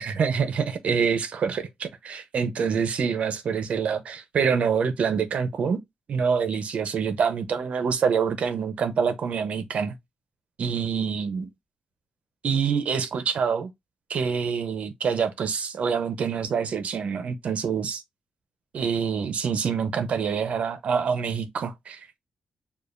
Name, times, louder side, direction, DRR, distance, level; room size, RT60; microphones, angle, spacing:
voice 1, 0.0-5.8 6.1-10.0 10.6-11.5 12.4-13.7 14.1-18.0 18.7-22.1, right 6 dB, 60° right, 0.8 m, -26 dB
6.8 x 2.5 x 2.5 m
wide cardioid pair, 155°, 2 cm